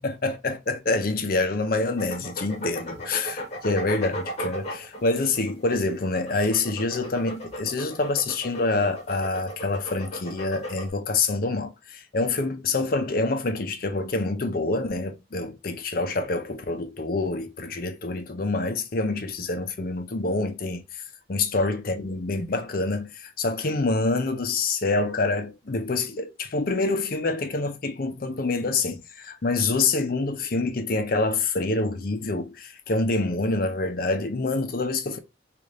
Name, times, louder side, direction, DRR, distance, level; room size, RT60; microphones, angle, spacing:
voice 1, 0.0-20.8 21.3-35.2, left 3 dB, 50° left, 0.6 m, -26 dB
sound 1, 2.0-10.9, equal, 35° left, 1.0 m, -36 dB
3.8 x 2.5 x 3.2 m
head